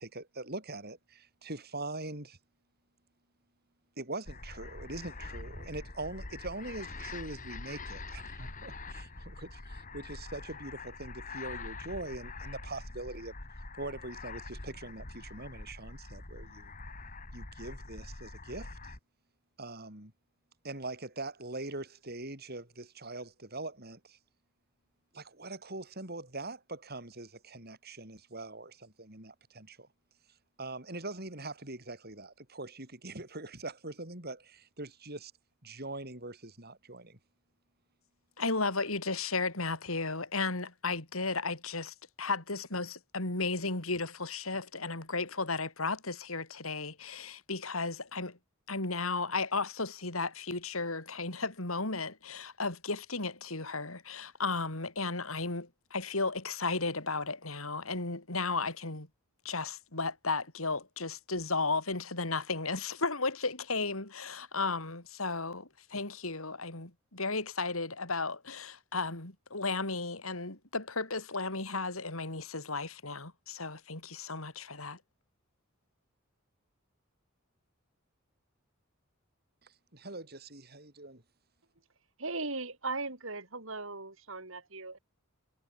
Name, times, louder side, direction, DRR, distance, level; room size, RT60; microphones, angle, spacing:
voice 1, 0.0-2.4 4.0-13.4 13.8-16.7 17.3-19.0 19.6-20.1 20.6-24.2 25.1-29.9 30.6-35.3 35.6-37.2 79.6-81.2, right 2 dB, 50° right, 7.5 m, -42 dB
sound 1, 4.3-19.0, left 3 dB, 40° left, 2.4 m, -45 dB
voice 2, 38.4-48.4 48.7-59.1 59.5-75.0, left 3 dB, 90° left, 5.1 m, -34 dB
voice 3, 82.2-85.0, right 3 dB, 70° right, 5.2 m, -38 dB
head